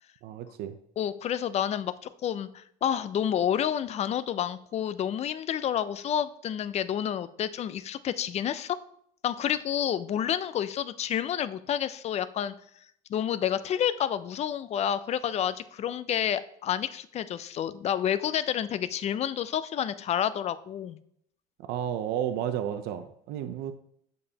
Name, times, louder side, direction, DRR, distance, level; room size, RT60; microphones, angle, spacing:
voice 1, 0.2-0.8 21.6-23.7, right 10 dB, 70° right, 9 dB, 0.5 m, -32 dB
voice 2, 1.0-1.9 2.2-8.8 9.2-12.5 13.1-21.0, left 9 dB, 40° left, 14 dB, 0.4 m, -29 dB
6.7 x 5.2 x 2.8 m, 0.68 s
supercardioid pair, 95°, 17 cm